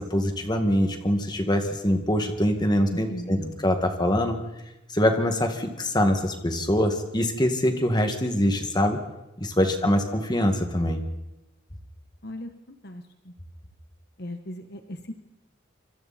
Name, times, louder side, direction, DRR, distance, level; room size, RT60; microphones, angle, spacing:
voice 1, 0.0-4.4 4.9-9.0 9.4-11.0, left 1 dB, 20° left, 5 dB, 2.1 m, -24 dB
voice 2, 2.9-3.7 12.2-13.3 14.2-15.1, left 1 dB, 55° left, 7 dB, 1.3 m, -37 dB
25.5 x 25.5 x 4.4 m, 0.98 s
head